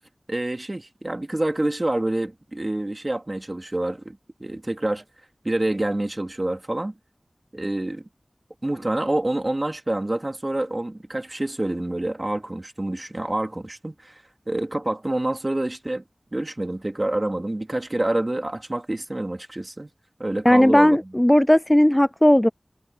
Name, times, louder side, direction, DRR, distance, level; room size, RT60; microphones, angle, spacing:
voice 1, 0.3-5.0 5.4-6.9 7.5-8.0 8.6-14.2 14.5-16.0 16.3-19.9 20.2-21.0, right 1 dB, 35° right, 2.9 m, -27 dB
voice 2, 20.5-22.5, left 1 dB, 15° left, 0.3 m, -16 dB
wide cardioid pair, 50°, 0 cm